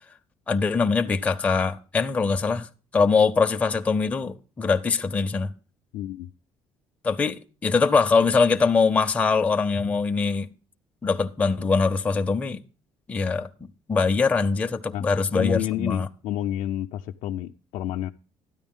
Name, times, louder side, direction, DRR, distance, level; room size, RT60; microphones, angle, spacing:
voice 1, 0.5-2.7 2.9-5.5 7.0-10.5 11.0-12.6 13.1-16.1, left 4 dB, 15° left, 0.4 m, -23 dB
voice 2, 5.9-6.3 14.9-15.0 15.3-18.1, left 12 dB, 75° left, 0.4 m, -29 dB
12.5 x 9.8 x 3.6 m
cardioid pair, 155°, 10 cm